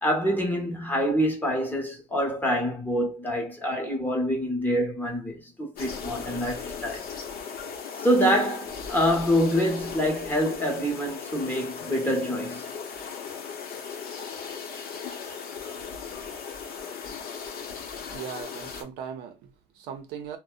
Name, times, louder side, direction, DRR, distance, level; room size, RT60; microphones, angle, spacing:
voice 1, 0.0-7.1 8.0-12.6, equal, 10° left, 0.8 m, -26 dB
sound 1, 5.8-18.8, left 6 dB, 60° left, 0.7 m, -37 dB
voice 2, 17.9-20.4, right 8 dB, 85° right, 0.6 m, -39 dB
2.6 x 2.1 x 2.3 m
cardioid pair, 110°, 17 cm